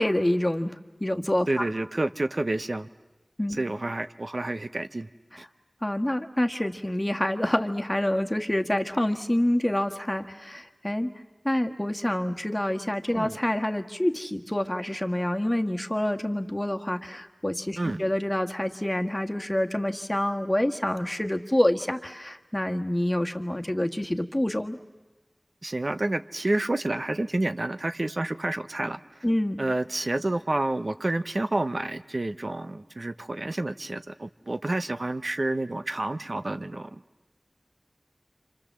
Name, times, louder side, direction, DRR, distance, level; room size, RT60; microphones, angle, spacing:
voice 1, 0.0-1.7 3.4-3.6 5.8-11.1 11.4-24.8 29.2-29.6, left 1 dB, 20° left, 5 dB, 1.7 m, -27 dB
voice 2, 1.5-2.9 3.5-5.1 5.4-5.5 13.1-13.4 17.8-18.0 25.6-29.2 29.6-36.9, right 2 dB, 65° right, 10 dB, 0.8 m, -29 dB
30.0 x 26.5 x 7.4 m, 1.2 s
wide cardioid pair, 40°, 0 cm